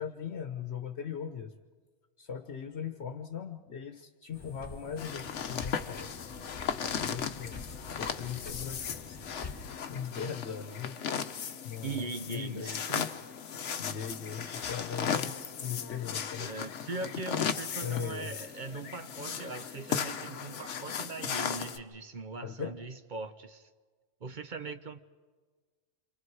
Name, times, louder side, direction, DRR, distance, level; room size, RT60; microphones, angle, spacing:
voice 1, 0.0-1.5 2.2-6.2 7.0-9.2 9.5-11.0 11.6-12.8 13.8-16.5 17.8-18.3 22.4-22.8, left 7 dB, 60° left, 7 dB, 1.3 m, -39 dB
sound 1, 4.3-9.8, left 3 dB, 30° left, 1.6 m, -46 dB
sound 2, 5.0-21.8, left 7 dB, 80° left, 1.2 m, -36 dB
voice 2, 11.8-13.1 14.4-14.8 16.3-23.7 24.2-25.0, right 3 dB, 45° right, 10 dB, 0.8 m, -40 dB
28.0 x 26.0 x 4.8 m, 1.4 s
omnidirectional pair, 1.2 m